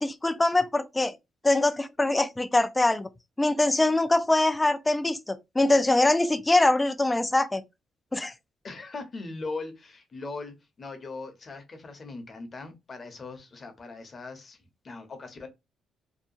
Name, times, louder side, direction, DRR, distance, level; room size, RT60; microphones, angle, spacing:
voice 1, 0.0-1.1 1.4-3.1 3.4-7.6 8.1-8.3, left 2 dB, 15° left, 0.4 m, -23 dB
voice 2, 8.6-14.6 14.8-15.5, left 3 dB, 40° left, 0.8 m, -39 dB
2.8 x 2.2 x 2.5 m
cardioid pair, 90°, 0 cm